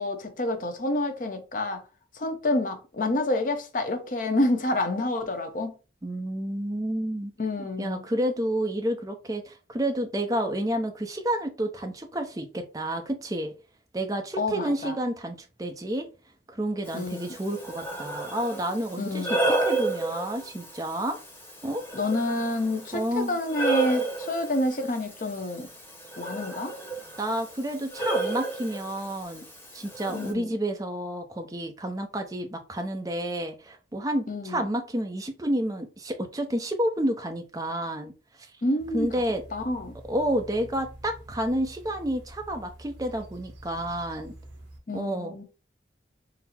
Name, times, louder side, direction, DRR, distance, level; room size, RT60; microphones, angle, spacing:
voice 1, 0.0-1.8 2.1-5.7 7.4-8.0 14.4-15.0 16.9-17.3 19.0-19.5 21.9-25.7 26.2-26.8 30.1-30.5 34.3-34.7 38.6-39.1 39.5-39.9 44.9-45.4, left 2 dB, 45° left, 0.7 m, -28 dB
voice 2, 6.0-7.3 7.6-13.5 13.9-16.1 16.5-21.2 21.6-21.8 22.9-23.4 27.2-29.5 29.7-38.1 38.4-38.5 38.9-39.4 40.1-44.3 44.9-45.4, right 1 dB, 20° right, 0.5 m, -30 dB
Breathing, 16.9-30.3, right 2 dB, 10° left, 0.9 m, -32 dB
sound 1, 38.8-44.8, right 1 dB, 70° right, 1.0 m, -47 dB
3.9 x 2.0 x 4.2 m
head